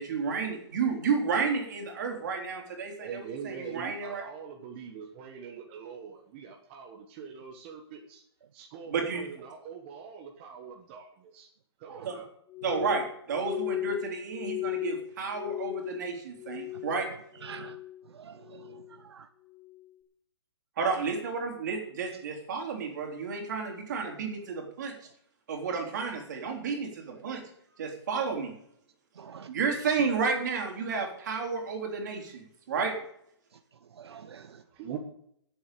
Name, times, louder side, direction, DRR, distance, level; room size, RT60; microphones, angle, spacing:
voice 1, 0.0-4.2 8.9-9.3 12.0-12.1 12.6-17.1 20.8-24.9 25.5-27.4 27.8-28.5 29.5-33.0, right 5 dB, 40° right, 2 dB, 3.8 m, -31 dB
voice 2, 3.0-8.2 8.5-11.5 11.8-12.3 34.3-35.0, right 7 dB, 25° right, 1 dB, 1.3 m, -43 dB
Glass, 12.5-17.1 17.4-18.0 18.4-19.0 19.5-19.8, left 16 dB, 10° left, 1.5 m, -37 dB
voice 3, 17.4-17.8 18.1-19.3 29.2-29.5 34.0-34.6, right 7 dB, 70° right, 9 dB, 1.0 m, -46 dB
16.5 x 8.0 x 6.9 m, 0.71 s
hypercardioid pair, 170°, 14 cm